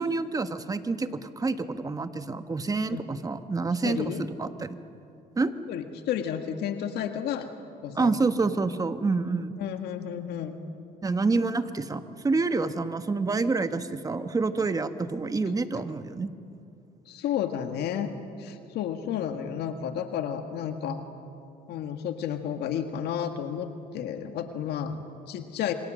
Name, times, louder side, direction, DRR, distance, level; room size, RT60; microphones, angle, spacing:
voice 1, 0.0-4.8 5.4-5.5 7.9-9.5 11.0-16.3, right 3 dB, 20° right, 10 dB, 1.3 m, -28 dB
voice 2, 3.8-4.2 5.7-7.5 7.8-8.2 9.6-10.5 17.0-18.1 18.4-21.0 21.7-25.7, left 9 dB, 75° left, 6 dB, 1.7 m, -32 dB
27.5 x 24.5 x 7.6 m, 2.6 s
cardioid pair, 110°, 17 cm